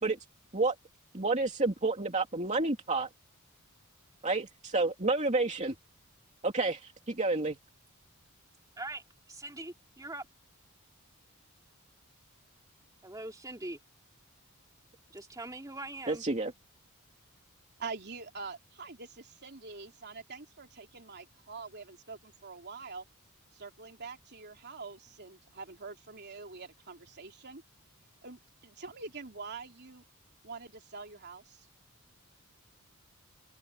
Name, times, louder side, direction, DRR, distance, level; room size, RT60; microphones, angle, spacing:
voice 1, 1.1-3.1 4.2-5.7 6.4-7.6 16.1-16.5, right 3 dB, 30° right, 2.7 m, -29 dB
voice 2, 8.8-10.3 13.0-13.8 15.1-16.2, right 2 dB, 15° right, 2.5 m, -42 dB
voice 3, 17.8-23.0 23.5-27.6 28.2-30.0 30.4-31.6, right 4 dB, 50° right, 3.4 m, -45 dB
open air
head